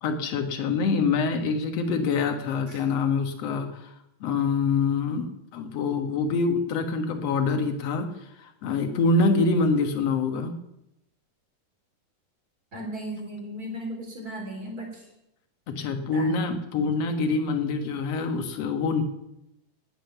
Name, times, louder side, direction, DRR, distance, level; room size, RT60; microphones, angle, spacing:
voice 1, 0.0-3.9 4.2-8.1 8.4-10.5 15.7-19.0, left 4 dB, 60° left, 6 dB, 2.4 m, -25 dB
voice 2, 12.7-15.0 16.1-16.5 16.8-16.9, right 1 dB, 30° right, 0 dB, 4.0 m, -36 dB
19.0 x 7.6 x 7.1 m, 0.86 s
omnidirectional pair, 3.5 m